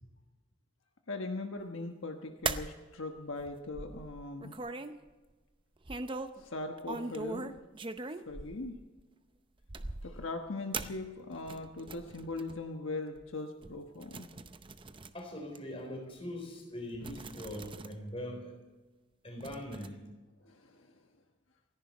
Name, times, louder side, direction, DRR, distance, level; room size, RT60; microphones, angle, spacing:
voice 1, 1.1-4.6 6.2-7.5 8.3-8.8 10.0-14.3 20.4-20.9, left 2 dB, 80° left, 4 dB, 1.3 m, -40 dB
sound 1, 2.4-2.8 3.3-4.9 5.8-6.4 6.8-9.0 9.6-10.3 10.7-12.6 13.2-13.3 13.6-15.2 15.5-15.6 16.6-16.7 16.9-17.9 18.2-18.3 19.4-19.9, right 3 dB, 25° right, 0.7 m, -40 dB
voice 2, 15.1-18.6 19.2-20.1, left 1 dB, 30° left, 2 dB, 3.9 m, -42 dB
28.0 x 10.5 x 4.2 m, 1.2 s
head